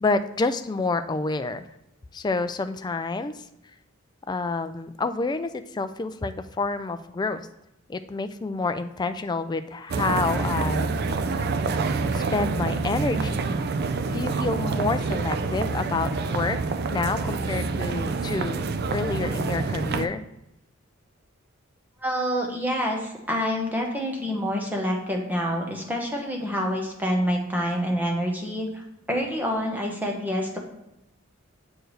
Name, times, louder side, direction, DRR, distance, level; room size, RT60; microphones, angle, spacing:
voice 1, 0.0-1.7 2.1-3.4 4.3-7.5 7.9-10.9 12.1-13.4 14.1-16.6 16.9-18.6 18.9-20.2, left 3 dB, 20° left, 10 dB, 0.3 m, -28 dB
sound 1, 9.9-20.1, right 4 dB, 50° right, 0.4 m, -27 dB
voice 2, 22.0-28.8 29.1-30.6, equal, 10° right, 0 dB, 1.0 m, -27 dB
7.7 x 4.5 x 3.2 m, 0.87 s
head